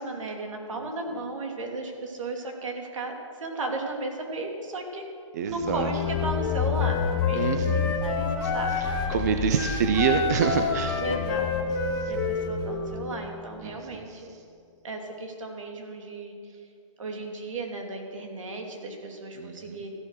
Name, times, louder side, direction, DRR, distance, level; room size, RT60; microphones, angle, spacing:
voice 1, 0.0-5.1 5.4-9.1 11.0-11.5 12.1-14.3 14.8-16.6 17.0-19.9, right 2 dB, 75° right, 2 dB, 2.8 m, -35 dB
voice 2, 5.3-6.0 7.3-8.0 8.4-11.0 11.9-12.1 13.6-14.4 19.4-19.8, right 7 dB, 30° right, 6 dB, 0.6 m, -28 dB
sound 1, 5.5-14.1, left 8 dB, 10° left, 0.4 m, -31 dB
Wind instrument woodwind instrument, 5.9-9.2 9.5-12.9, left 4 dB, 45° left, 2.3 m, -30 dB
13.5 x 10.5 x 6.4 m, 2.3 s
hypercardioid pair, 175°, 17 cm